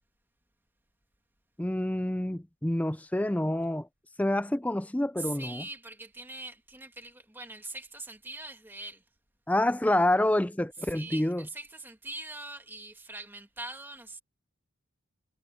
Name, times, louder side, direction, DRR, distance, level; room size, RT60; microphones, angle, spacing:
voice 1, 1.6-3.9 4.2-5.6 9.5-11.4, left 1 dB, 5° left, 0.4 m, -27 dB
voice 2, 5.2-9.0 10.8-14.2, right 2 dB, 10° right, 2.4 m, -42 dB
head